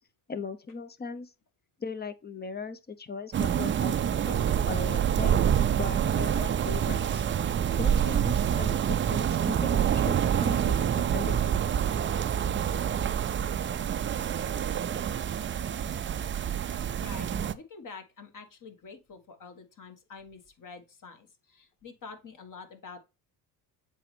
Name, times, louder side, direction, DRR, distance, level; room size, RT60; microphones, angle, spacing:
voice 1, 0.3-1.3 1.8-7.2 7.8-11.8, left 4 dB, 20° left, 0.7 m, -39 dB
sound 1, 3.3-17.5, right 9 dB, 25° right, 0.4 m, -27 dB
voice 2, 17.0-23.0, left 5 dB, 40° left, 1.5 m, -47 dB
7.5 x 4.2 x 3.3 m
supercardioid pair, 75°, 46 cm